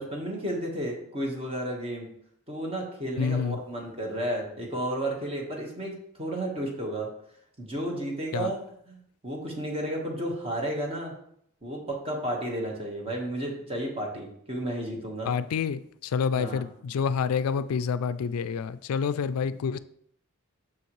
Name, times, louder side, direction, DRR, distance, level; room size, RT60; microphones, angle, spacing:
voice 1, 0.0-2.1 2.5-7.1 7.6-8.6 8.9-11.1 11.6-15.3 16.3-16.6 19.4-19.5, right 1 dB, 25° right, 1.5 m, -32 dB
voice 2, 3.2-3.6 8.3-8.5 15.3-19.8, left 6 dB, 85° left, 0.3 m, -28 dB
7.0 x 6.4 x 3.2 m
head